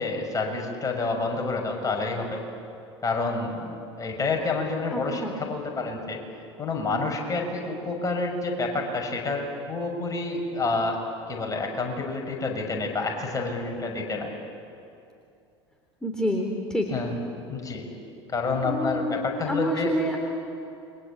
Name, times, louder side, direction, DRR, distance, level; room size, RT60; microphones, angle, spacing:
voice 1, 0.0-2.4 3.0-6.2 6.6-11.0 11.3-14.3 16.9-17.1 17.5-17.9 18.3-19.9, left 3 dB, 25° left, 2 dB, 6.2 m, -28 dB
voice 2, 4.9-5.3 16.0-16.9 18.6-19.2 19.5-20.2, equal, 5° left, 0 dB, 3.6 m, -27 dB
29.0 x 23.5 x 8.7 m, 2.6 s
figure-of-eight pair, 75°, 15 cm